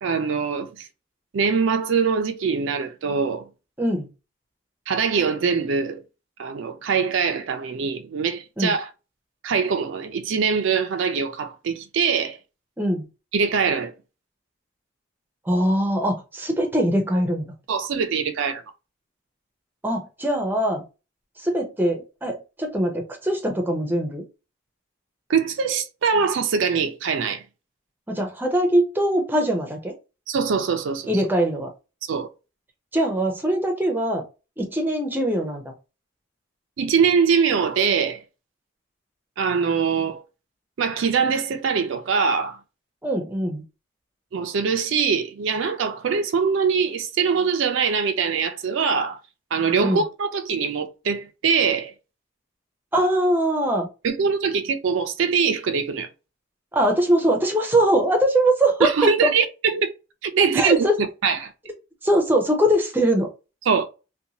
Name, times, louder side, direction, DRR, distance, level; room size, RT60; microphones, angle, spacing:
voice 1, 0.0-0.9 1.3-3.4 4.9-6.0 6.4-8.9 9.4-12.4 13.3-13.9 17.7-18.6 25.3-27.4 30.3-31.1 32.1-32.3 36.8-38.2 39.4-40.2 40.8-42.6 44.3-49.2 49.5-51.9 54.0-56.1 58.8-59.9 60.2-60.9 61.2-61.5 63.7-63.8, right 5 dB, 65° right, 0.4 m, -23 dB
voice 2, 3.8-4.1 8.6-8.7 12.8-13.1 15.5-17.5 19.8-20.8 21.4-24.2 28.1-29.9 31.1-31.7 32.9-34.2 34.6-35.6 43.0-43.6 49.8-50.0 52.9-53.9 56.7-58.9 59.2-59.3 60.5-61.0 62.0-63.3, right 1 dB, 10° right, 0.5 m, -22 dB
2.6 x 2.2 x 2.8 m
head